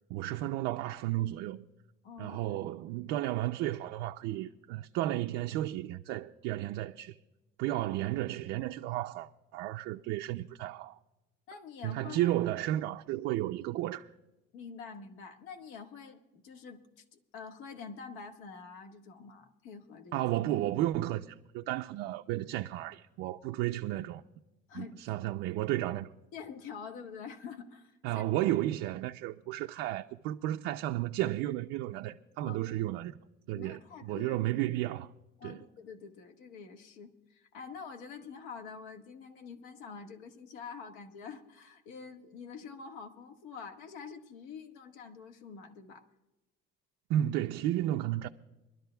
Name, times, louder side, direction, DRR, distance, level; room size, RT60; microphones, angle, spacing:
voice 1, 0.1-1.7 2.2-7.2 7.6-11.0 11.8-14.1 20.1-24.2 24.7-26.1 28.0-33.1 33.5-35.1 35.4-35.6 47.1-48.3, right 14 dB, 70° right, 0.5 m, -33 dB
voice 2, 2.0-2.6 11.5-12.3 14.5-20.2 24.7-25.0 26.3-28.2 32.4-32.8 33.5-34.4 35.4-46.0, left 5 dB, 80° left, 1.6 m, -46 dB
25.5 x 12.5 x 2.3 m
cardioid pair, 165°, 20 cm